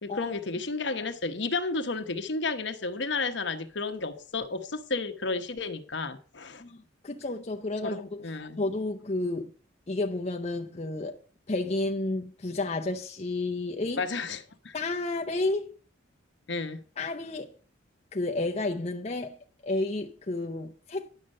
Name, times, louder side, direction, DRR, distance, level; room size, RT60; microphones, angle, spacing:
voice 1, 0.0-6.6 7.8-8.6 14.0-14.7 16.5-16.8, left 3 dB, 65° left, 1.1 m, -32 dB
voice 2, 7.0-8.3 8.6-9.5 9.9-11.2 11.5-14.0 14.7-15.8 17.0-17.5 18.1-19.4 19.6-21.1, left 2 dB, 35° left, 0.6 m, -31 dB
10.5 x 6.4 x 6.6 m
head